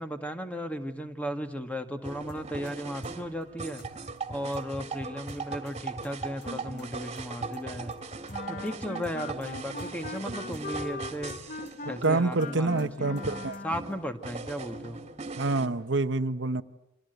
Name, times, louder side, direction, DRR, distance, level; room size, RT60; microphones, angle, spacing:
voice 1, 0.0-3.8 4.3-8.0 8.5-11.3 11.8-13.2 13.6-15.0, equal, 5° left, 7 dB, 1.8 m, -35 dB
sound 1, 2.0-15.7, right 3 dB, 35° right, 2.3 m, -39 dB
sound 2, 2.3-2.7 3.0-3.1 3.4-3.5 3.8-3.9 4.2-4.3 4.5-4.9 5.3-5.7 6.0-6.1 6.4-6.5 6.8-6.9 7.2-7.3 7.5-8.0 8.3-8.7 9.0-9.1 9.4-9.5 9.8-9.9 10.2-10.3 10.5-10.9 11.3-11.7 12.0-12.1 12.4-12.5 12.8-12.9 13.2-13.3 13.5-13.9, left 1 dB, 60° left, 6.3 m, -50 dB
Wind instrument woodwind instrument, 8.3-14.0, left 3 dB, 40° left, 0.9 m, -40 dB
voice 2, 12.0-13.6 15.4-16.6, right 3 dB, 65° right, 11 dB, 1.0 m, -27 dB
29.5 x 25.0 x 8.0 m, 0.91 s
head